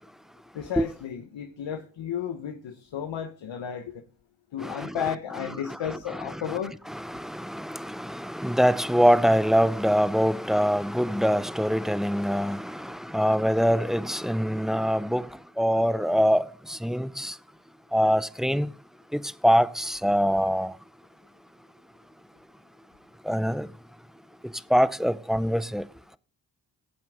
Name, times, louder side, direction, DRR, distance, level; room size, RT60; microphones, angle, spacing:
voice 1, 0.5-3.9 4.5-6.7, left 8 dB, 75° left, 1.1 m, -33 dB
voice 2, 4.6-5.0 6.5-6.6 6.9-15.3 15.6-17.3 17.9-18.7 19.1-20.7 23.3-23.7 24.7-25.9, equal, ahead, 0.6 m, -24 dB
17.0 x 7.7 x 3.7 m
supercardioid pair, 45°, 45 cm